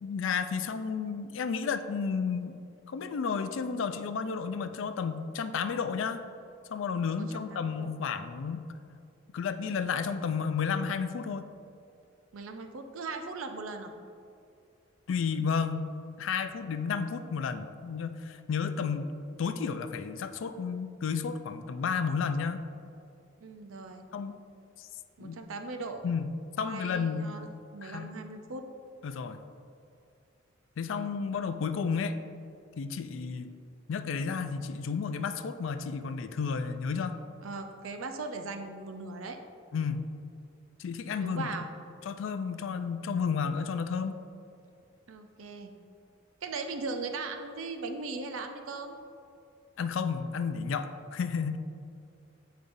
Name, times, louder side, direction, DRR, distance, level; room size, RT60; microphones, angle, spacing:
voice 1, 0.0-6.2 6.7-8.7 9.3-11.5 15.1-15.9 16.2-19.1 19.4-22.6 24.1-24.4 24.8-24.9 25.2-25.4 26.0-26.3 26.6-27.3 27.8-28.1 29.0-29.4 30.8-32.2 32.8-33.5 33.9-37.2 39.7-40.1 40.8-41.5 42.1-44.2 49.8-51.6, left 6 dB, 65° left, 10 dB, 0.4 m, -32 dB
voice 2, 7.1-7.9 12.3-13.9 23.4-24.0 25.2-26.0 26.6-28.7 37.4-39.4 41.1-41.7 45.1-45.7 46.4-49.0, right 3 dB, 85° right, 6 dB, 0.5 m, -39 dB
8.3 x 5.1 x 2.6 m, 2.5 s
head